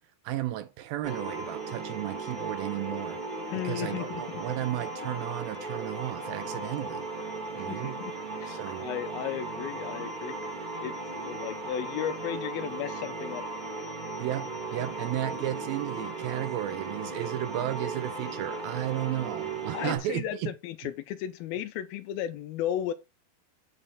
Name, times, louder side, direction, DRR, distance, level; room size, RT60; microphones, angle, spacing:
voice 1, 0.2-3.2 3.5-7.1 7.6-8.0 8.5-8.9 14.2-20.5 20.8-20.9, right 13 dB, 80° right, 2.4 m, -34 dB
sound 1, 1.0-20.0, right 3 dB, 15° right, 2.3 m, -37 dB
voice 2, 3.5-4.4 7.7-10.4 10.8-13.4 19.7-22.9, left 11 dB, 85° left, 2.5 m, -35 dB
8.9 x 4.7 x 4.2 m
omnidirectional pair, 4.4 m